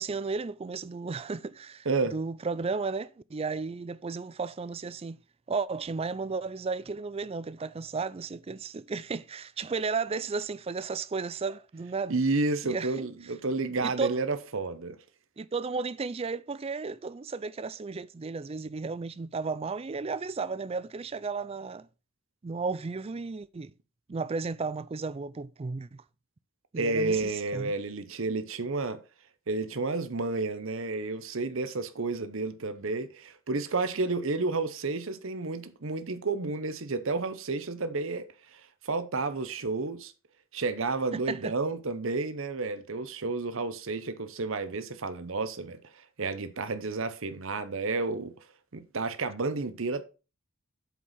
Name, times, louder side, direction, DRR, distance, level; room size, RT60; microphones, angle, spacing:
voice 1, 0.0-1.9 2.1-5.2 5.5-12.2 12.6-13.1 13.8-14.2 15.4-21.9 22.4-23.7 24.1-26.0 26.7-27.7 41.1-41.5, right 4 dB, 25° right, 0.4 m, -34 dB
voice 2, 12.1-15.0 26.7-29.0 29.5-40.1 40.5-48.3 48.7-50.0, right 3 dB, 65° right, 0.8 m, -31 dB
8.2 x 4.5 x 5.6 m
head